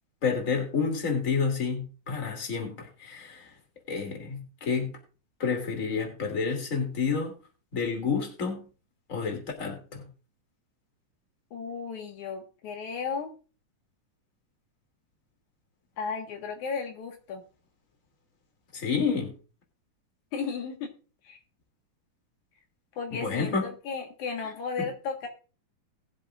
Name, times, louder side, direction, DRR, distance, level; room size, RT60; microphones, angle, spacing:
voice 1, 0.2-3.5 3.9-4.9 5.4-7.3 7.7-8.6 9.1-9.8 18.7-19.3 23.1-23.6 24.8-24.9, left 5 dB, 25° left, 2.9 m, -29 dB
voice 2, 11.5-13.3 16.0-17.4 20.3-20.9 21.2-21.4 23.0-25.3, left 5 dB, 75° left, 3.0 m, -34 dB
20.5 x 7.7 x 2.5 m
omnidirectional pair, 3.5 m